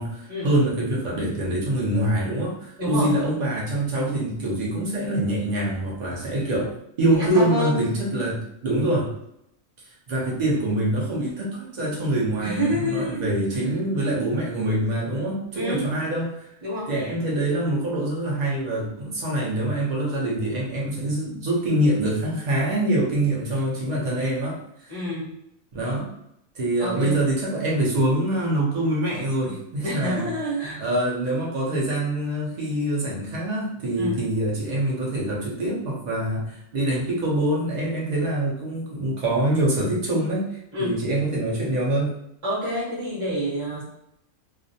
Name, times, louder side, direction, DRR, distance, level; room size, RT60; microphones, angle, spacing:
voice 1, 0.0-9.1 10.1-16.5 16.9-24.9 25.7-26.1 26.5-30.3 30.8-42.1, right 1 dB, 55° right, -4 dB, 0.5 m, -25 dB
voice 2, 2.8-3.1 7.1-7.8 12.4-13.4 15.5-15.8 16.6-16.9 24.9-25.4 26.8-27.2 29.8-30.9 33.9-34.2 40.7-41.0 42.4-43.8, equal, 30° right, -7 dB, 0.8 m, -28 dB
2.4 x 2.1 x 2.6 m, 0.79 s
omnidirectional pair, 1.5 m